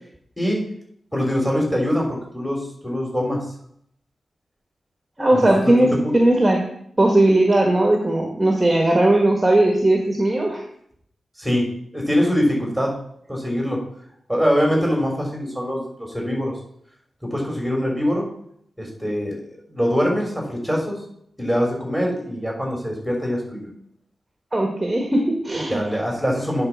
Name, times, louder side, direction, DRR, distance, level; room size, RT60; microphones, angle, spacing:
voice 1, 1.1-3.5 5.3-5.5 6.0-6.1 11.4-11.7 11.9-12.9 13.3-13.8 14.3-16.5 17.2-18.3 18.8-21.0 21.4-23.7 25.7-26.7, equal, ahead, -1 dB, 3.5 m, -23 dB
voice 2, 5.2-6.6 7.0-10.6 24.5-25.8, right 1 dB, 20° right, 2 dB, 1.3 m, -18 dB
9.8 x 4.1 x 6.2 m, 0.69 s
wide cardioid pair, 80°, 0 cm